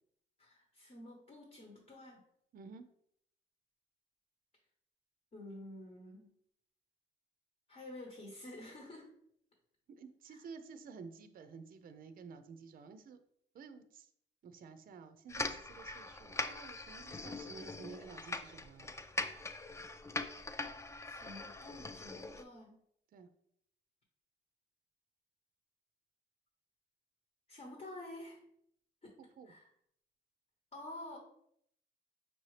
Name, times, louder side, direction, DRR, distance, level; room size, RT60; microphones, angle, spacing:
voice 1, 0.4-2.2 5.3-6.3 7.7-9.1 10.3-10.5 21.0-22.8 27.5-28.4 29.0-29.1 29.4-29.7 30.7-31.2, left 1 dB, 35° left, 0 dB, 1.0 m, -50 dB
voice 2, 2.5-2.8 9.9-13.2 13.5-14.1 14.4-18.9 23.1-23.3 29.4-29.5, right 5 dB, 45° right, 10 dB, 0.5 m, -52 dB
sound 1, 15.3-22.4, left 3 dB, 15° left, 0.3 m, -42 dB
5.4 x 2.8 x 3.2 m, 0.71 s
cardioid pair, 90°, 20 cm